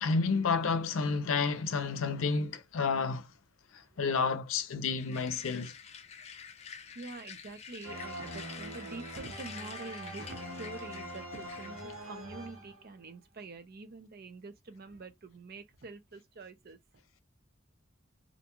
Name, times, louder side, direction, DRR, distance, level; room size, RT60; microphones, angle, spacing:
voice 1, 0.0-3.3 3.7-5.7, left 4 dB, 90° left, 0.5 m, -30 dB
sound 1, 5.0-12.1, left 7 dB, 35° left, 0.4 m, -48 dB
voice 2, 6.9-16.8, right 3 dB, 50° right, 0.5 m, -46 dB
sound 2, 7.8-13.1, right 1 dB, 75° right, 1.2 m, -44 dB
2.5 x 2.3 x 2.9 m
head